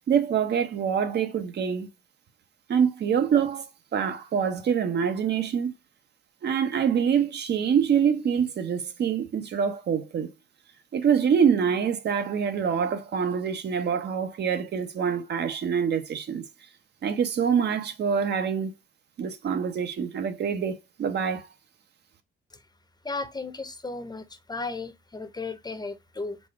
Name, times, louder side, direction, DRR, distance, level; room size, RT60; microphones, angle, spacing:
voice 1, 0.1-1.9 2.7-5.7 6.4-10.3 10.9-16.4 17.0-18.7 19.2-21.5, right 7 dB, 60° right, 0.8 m, -25 dB
voice 2, 23.0-26.4, left 3 dB, 20° left, 0.7 m, -35 dB
4.1 x 2.4 x 4.6 m
cardioid pair, 90°, 20 cm